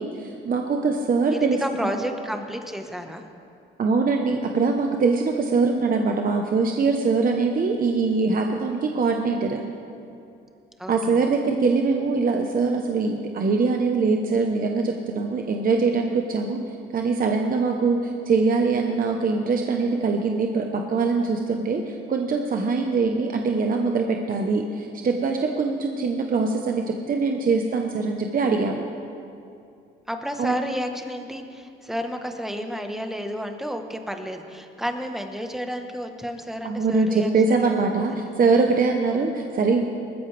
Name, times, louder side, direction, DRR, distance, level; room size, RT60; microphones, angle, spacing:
voice 1, 0.0-1.9 3.8-9.6 10.9-16.6 16.9-28.8 30.4-30.6 36.6-39.9, right 4 dB, 45° right, 3 dB, 1.0 m, -23 dB
voice 2, 1.2-3.2 10.8-11.3 30.1-37.8 38.1-38.2, equal, ahead, 5 dB, 1.3 m, -31 dB
20.0 x 14.5 x 3.4 m, 2.6 s
cardioid pair, 90°, 20 cm